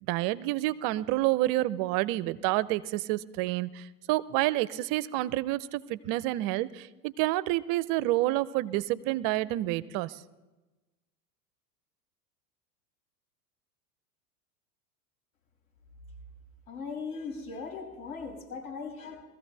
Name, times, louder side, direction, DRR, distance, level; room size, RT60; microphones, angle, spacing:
voice 1, 0.0-10.2, right 17 dB, 45° right, 18 dB, 0.7 m, -29 dB
voice 2, 16.7-19.2, left 4 dB, 70° left, -1 dB, 7.0 m, -38 dB
22.5 x 14.5 x 3.4 m, 1.1 s
hypercardioid pair, 90°, 47 cm